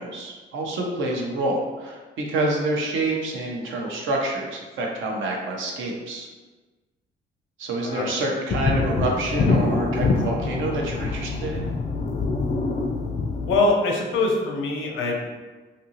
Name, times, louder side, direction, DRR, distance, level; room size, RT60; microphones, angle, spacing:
voice 1, 0.0-6.3 7.6-11.7, right 2 dB, 75° right, 0 dB, 0.7 m, -27 dB
sound 1, 8.5-13.6, left 3 dB, 35° left, 0.4 m, -25 dB
voice 2, 13.5-15.4, left 2 dB, 80° left, 1 dB, 0.6 m, -23 dB
2.8 x 2.5 x 2.8 m, 1.3 s
cardioid pair, 90°, 20 cm